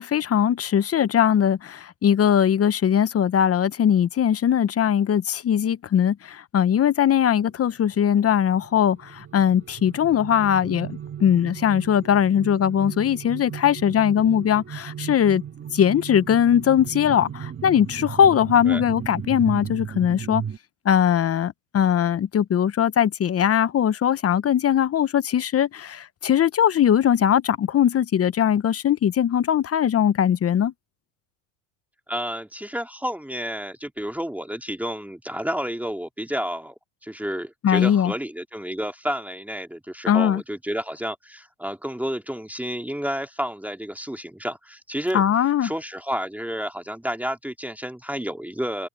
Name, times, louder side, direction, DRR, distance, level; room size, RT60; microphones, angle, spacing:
voice 1, 0.0-15.4 15.7-20.4 20.8-30.7 37.6-38.1 40.1-40.4 45.1-45.7, left 9 dB, 30° left, 1.0 m, -20 dB
sound 1, 7.8-20.6, right 8 dB, 25° right, 1.8 m, -36 dB
voice 2, 32.1-36.7 37.0-45.2 45.6-48.9, equal, 5° right, 2.6 m, -30 dB
supercardioid pair, 100°, 45 cm